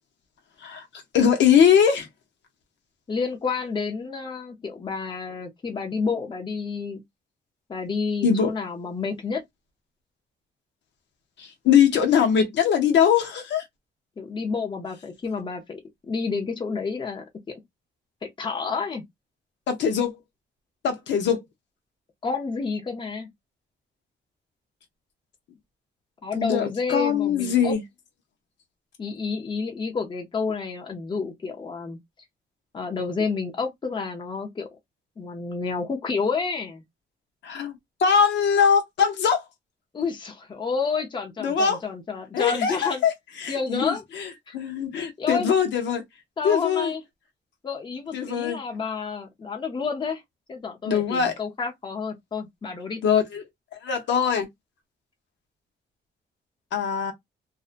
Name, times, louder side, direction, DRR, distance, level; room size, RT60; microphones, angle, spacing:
voice 1, 1.1-2.1 8.2-8.5 11.4-13.6 19.7-20.2 20.8-21.4 26.3-27.8 37.4-39.4 41.4-41.8 42.3-43.1 43.4-46.0 46.4-46.9 48.1-48.6 50.9-51.3 53.0-53.4 53.8-54.5 56.7-57.1, left 7 dB, 75° left, 0.8 m, -22 dB
voice 2, 3.1-7.0 7.7-9.4 14.2-15.8 16.1-17.5 18.2-19.0 22.2-23.3 26.2-27.8 29.0-32.0 32.7-34.7 35.2-36.8 39.9-43.0 43.5-44.0 44.5-44.6 45.2-45.5 46.4-47.0 47.6-50.2 50.5-53.0, left 4 dB, 25° left, 0.6 m, -29 dB
2.5 x 2.2 x 2.5 m
cardioid pair, 130°, 18 cm